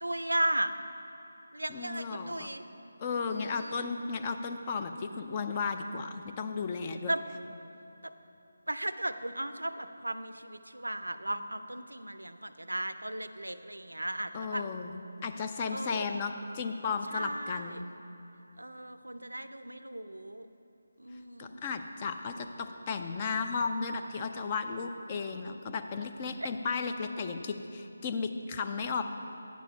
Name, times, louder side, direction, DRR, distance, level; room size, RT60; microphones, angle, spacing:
voice 1, 0.0-0.7 1.5-2.6 3.1-3.9 7.1-7.2 8.7-14.6 15.7-16.1 17.1-17.8 18.6-20.5 21.0-21.7 26.4-26.5, right 1 dB, 90° right, 11 dB, 0.4 m, -36 dB
voice 2, 1.7-2.5 3.0-7.1 14.3-17.9 21.4-29.0, left 5 dB, 25° left, 6 dB, 0.4 m, -34 dB
9.3 x 6.2 x 5.3 m, 3.0 s
figure-of-eight pair, 160°, 0 cm